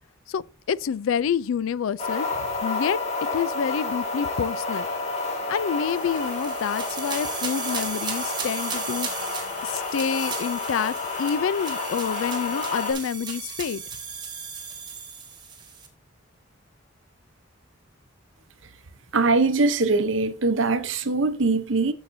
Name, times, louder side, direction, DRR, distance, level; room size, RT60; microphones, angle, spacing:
voice 1, 0.7-3.0 3.3-4.9 5.5-9.1 9.6-13.8, left 7 dB, 85° left, 0.3 m, -28 dB
sound 1, 2.0-12.9, left 3 dB, 35° left, 1.9 m, -30 dB
sound 2, 5.9-15.9, right 6 dB, 20° right, 1.6 m, -36 dB
voice 2, 19.1-21.9, right 3 dB, 75° right, 0.8 m, -22 dB
13.0 x 5.7 x 2.7 m
head